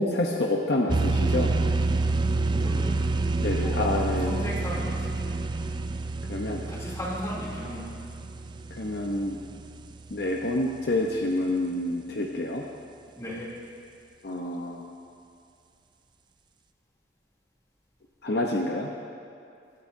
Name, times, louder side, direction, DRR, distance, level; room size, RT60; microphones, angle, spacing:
voice 1, 0.0-1.5 3.4-4.4 6.3-6.6 8.7-9.4 10.1-12.6 14.2-14.8 18.2-18.9, left 1 dB, 60° left, 0 dB, 0.8 m, -28 dB
sound 1, 0.9-10.4, right 3 dB, 25° right, 0.3 m, -28 dB
voice 2, 2.2-3.0 3.5-5.4 6.7-7.9 13.1-13.5, equal, 20° left, -6 dB, 2.9 m, -36 dB
20.0 x 11.0 x 2.7 m, 2.5 s
head